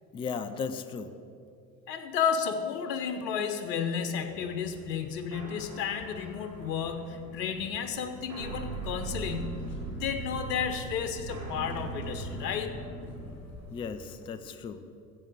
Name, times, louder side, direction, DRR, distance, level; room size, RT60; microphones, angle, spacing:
voice 1, 0.1-1.1 13.7-14.8, left 5 dB, 10° left, 10 dB, 0.4 m, -36 dB
voice 2, 1.9-12.7, left 7 dB, 65° left, 7 dB, 1.0 m, -32 dB
sound 1, 3.6-13.3, right 3 dB, 85° right, 3.1 m, -40 dB
sound 2, 4.3-14.2, left 4 dB, 35° left, 3.7 m, -50 dB
14.0 x 8.0 x 6.5 m, 2.5 s
figure-of-eight pair, 80°, 50 cm